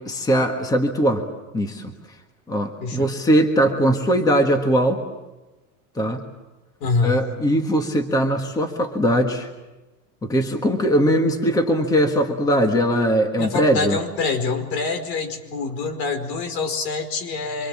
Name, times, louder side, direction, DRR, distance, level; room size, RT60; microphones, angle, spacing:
voice 1, 0.1-1.2 1.5-1.9 2.5-5.0 6.0-6.2 7.0-9.5 10.2-14.0, equal, 5° left, 5 dB, 1.6 m, -20 dB
voice 2, 2.8-3.1 6.8-7.3 13.4-17.7, left 4 dB, 80° left, 7 dB, 5.1 m, -25 dB
26.0 x 25.5 x 7.4 m, 1.1 s
supercardioid pair, 160°, 50 cm